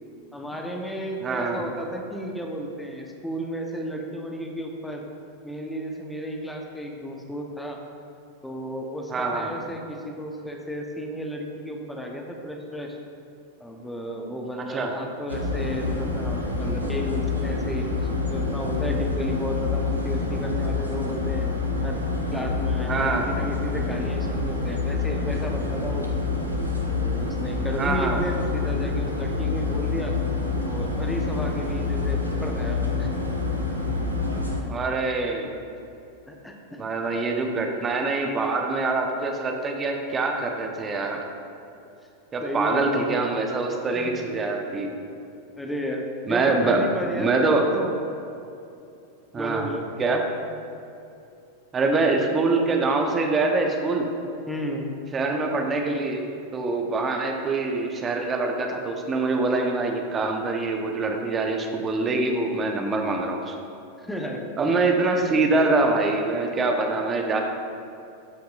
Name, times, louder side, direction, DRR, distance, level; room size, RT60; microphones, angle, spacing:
voice 1, 0.3-5.0 5.4-7.8 8.4-13.0 13.6-17.9 18.3-21.5 21.8-22.0 22.3-26.1 26.9-30.1 30.7-33.1 36.3-36.8 37.1-37.2 42.4-42.9 43.9-44.1 45.6-48.0 49.4-49.8 52.1-52.2 54.5-55.0 64.0-64.5, equal, 5° left, 1 dB, 1.0 m, -33 dB
voice 2, 1.2-1.6 9.1-9.5 14.7-14.9 22.9-23.3 27.8-28.2 34.7-35.6 36.8-41.2 42.3-44.9 46.3-46.8 47.1-47.7 49.3-49.7 50.0-50.2 51.7-54.1 55.1-56.2 56.5-63.5 64.6-67.4, right 3 dB, 20° right, 2 dB, 1.0 m, -24 dB
sound 1, 15.3-34.6, left 3 dB, 90° right, 0.9 m, -27 dB
13.0 x 5.8 x 2.5 m, 2.6 s
figure-of-eight pair, 90°, 0 cm